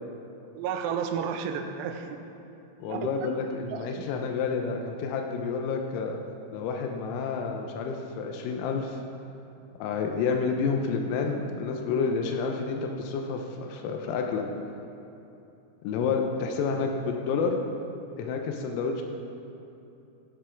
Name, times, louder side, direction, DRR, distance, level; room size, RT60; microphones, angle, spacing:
voice 1, 0.5-2.2 2.9-3.1 3.7-4.1, right 7 dB, 85° right, 6 dB, 2.8 m, -32 dB
voice 2, 2.8-6.2 6.5-9.0 9.8-14.4 15.8-17.6 18.2-19.0, left 5 dB, 85° left, 3 dB, 3.5 m, -29 dB
16.0 x 7.0 x 4.5 m, 2.8 s
omnidirectional pair, 5.9 m